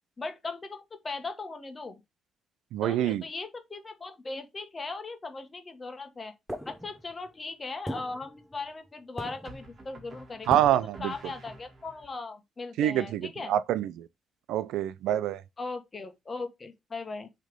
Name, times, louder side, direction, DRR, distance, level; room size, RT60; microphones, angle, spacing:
voice 1, 0.2-2.0 2.8-6.3 6.6-10.7 11.0-13.5 15.6-17.3, left 3 dB, 30° left, 1.3 m, -38 dB
voice 2, 2.7-3.3 10.5-11.1 12.8-14.1 14.5-15.4, right 12 dB, 90° right, 0.4 m, -26 dB
sound 1, 6.5-7.3 7.9-8.9 9.2-9.8 10.5-11.0, equal, ahead, 0.8 m, -39 dB
sound 2, 6.8-7.4 9.4-12.1, right 2 dB, 35° right, 2.1 m, -50 dB
6.4 x 3.4 x 5.1 m
cardioid pair, 100°, 0 cm